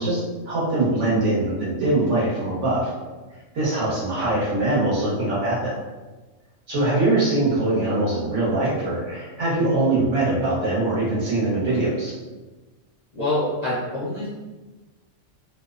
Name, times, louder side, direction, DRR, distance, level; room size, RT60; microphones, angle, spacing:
voice 1, 0.0-2.9 3.5-5.8 6.7-12.2, right 2 dB, 70° right, -7 dB, 1.3 m, -22 dB
voice 2, 13.1-14.3, left 1 dB, 45° left, -10 dB, 0.5 m, -26 dB
2.8 x 2.0 x 2.4 m, 1.2 s
omnidirectional pair, 1.3 m